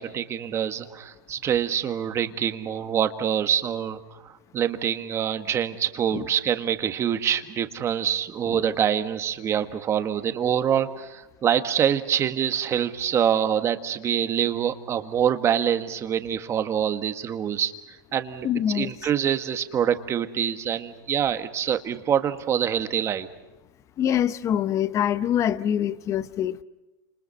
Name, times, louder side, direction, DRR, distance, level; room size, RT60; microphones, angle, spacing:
voice 1, 0.0-4.0 4.5-17.7 18.1-18.5 18.7-23.3, right 9 dB, 25° right, 1.6 m, -25 dB
voice 2, 18.4-18.9 24.0-26.6, left 10 dB, 25° left, 0.8 m, -25 dB
29.0 x 27.5 x 5.6 m
supercardioid pair, 145°, 11 cm